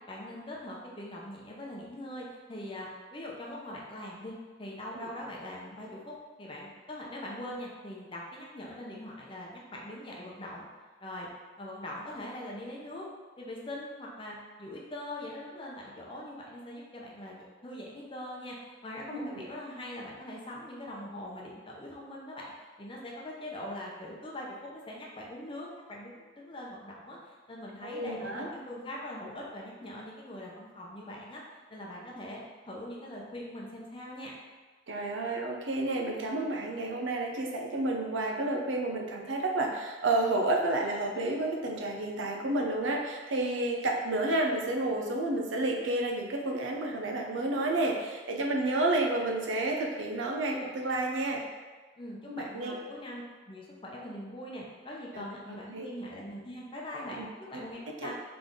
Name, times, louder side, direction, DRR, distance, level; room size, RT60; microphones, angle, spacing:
voice 1, 0.1-10.7 11.0-11.3 11.6-13.1 13.4-18.6 18.8-22.5 22.8-31.4 31.7-34.3 50.4-50.7 52.0-58.1, left 1 dB, 25° left, -3 dB, 0.7 m, -42 dB
voice 2, 19.1-19.5 27.8-28.5 34.9-51.4 52.3-52.8 55.1-55.9 57.2-57.3 58.0-58.1, right 2 dB, 75° right, 1 dB, 0.6 m, -30 dB
3.9 x 3.4 x 3.6 m, 1.4 s
head